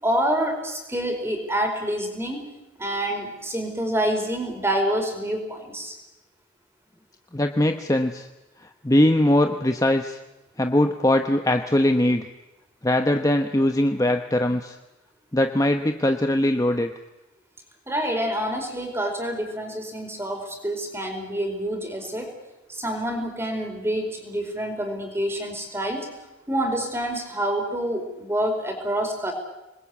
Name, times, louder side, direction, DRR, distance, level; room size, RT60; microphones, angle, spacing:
voice 1, 0.0-2.5 2.8-5.9 17.9-22.4 22.7-26.1 26.5-29.3, right 1 dB, 15° right, 3 dB, 4.8 m, -27 dB
voice 2, 7.3-8.3 8.8-10.2 10.6-12.2 12.8-14.8 15.3-16.9, left 1 dB, 20° left, 6 dB, 0.9 m, -21 dB
27.0 x 20.5 x 8.5 m, 1.0 s
head